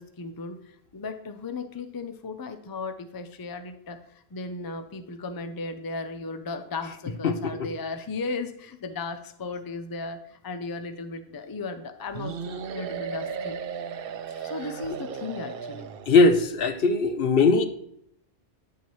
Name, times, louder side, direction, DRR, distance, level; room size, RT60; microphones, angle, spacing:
voice 1, 0.0-4.0 4.3-13.6 14.4-15.9, left 3 dB, 25° left, 0.5 m, -36 dB
voice 2, 7.2-7.7 16.1-17.7, left 3 dB, 65° left, 0.9 m, -20 dB
sound 1, 12.1-16.3, right 6 dB, 65° right, 0.7 m, -35 dB
9.9 x 6.9 x 3.1 m
omnidirectional pair, 1.1 m